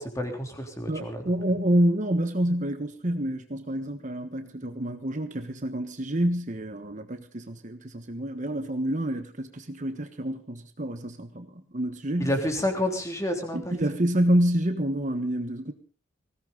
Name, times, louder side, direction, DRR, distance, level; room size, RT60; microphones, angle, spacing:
voice 1, 0.0-1.2 12.2-13.7, left 1 dB, 15° left, 3.4 m, -29 dB
voice 2, 0.9-12.3 13.5-15.7, right 1 dB, 40° right, 1.3 m, -28 dB
20.5 x 17.0 x 3.9 m
head